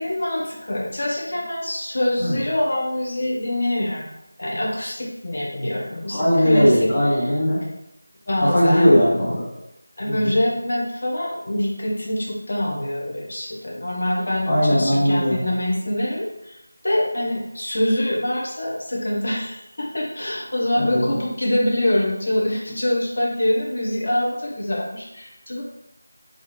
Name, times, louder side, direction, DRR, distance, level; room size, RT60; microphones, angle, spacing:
voice 1, 0.0-4.1 4.4-6.9 8.3-9.0 10.0-16.6 16.8-25.6, left 1 dB, 55° left, -4 dB, 1.4 m, -24 dB
voice 2, 6.1-7.6 8.4-9.5 10.1-10.3 14.5-15.4 20.8-21.0, equal, 20° left, -9 dB, 1.5 m, -19 dB
4.4 x 3.4 x 3.3 m, 0.86 s
figure-of-eight pair, 165°, 0 cm